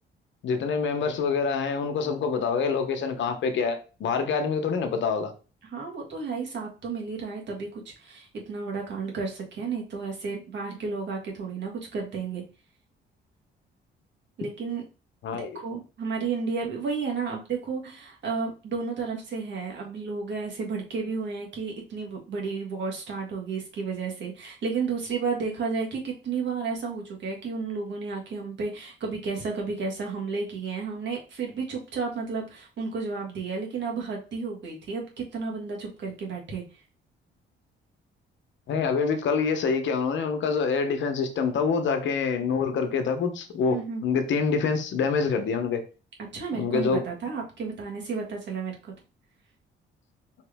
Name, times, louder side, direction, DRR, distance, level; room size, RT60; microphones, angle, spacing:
voice 1, 0.4-5.3 15.2-15.6 38.7-45.8 46.5-47.0, left 5 dB, 70° left, 0.9 m, -26 dB
voice 2, 5.6-12.4 14.4-14.8 15.3-36.6 43.7-44.0 46.3-48.9, right 4 dB, 65° right, 1.8 m, -32 dB
4.6 x 3.0 x 3.5 m
cardioid pair, 90°, 20 cm